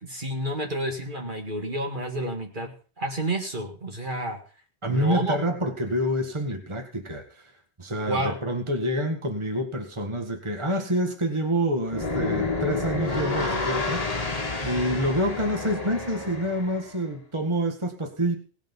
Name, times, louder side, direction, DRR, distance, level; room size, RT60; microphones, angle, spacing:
voice 1, 0.0-4.4 4.9-5.4 8.1-8.4, right 1 dB, 50° right, 2 dB, 2.1 m, -30 dB
voice 2, 4.8-7.5 7.8-14.1 14.6-18.4, equal, 25° right, 4 dB, 1.9 m, -27 dB
sound 1, 11.8-16.9, left 3 dB, 35° left, 1.5 m, -29 dB
18.5 x 7.2 x 5.4 m, 0.38 s
omnidirectional pair, 1.1 m